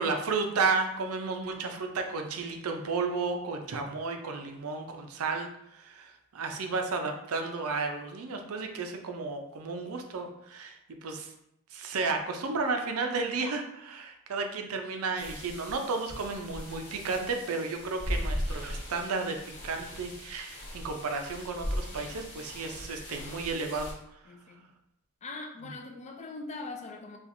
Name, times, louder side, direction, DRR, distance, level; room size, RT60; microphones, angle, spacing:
voice 1, 0.0-11.3 11.7-19.4 19.6-23.9 25.6-25.7, right 4 dB, 80° right, 4 dB, 0.5 m, -33 dB
sound 1, 15.2-23.9, equal, 85° left, 1.2 m, -38 dB
voice 2, 24.3-24.7 25.2-27.2, left 3 dB, 30° left, 4 dB, 0.4 m, -41 dB
4.1 x 2.4 x 2.5 m, 0.80 s
head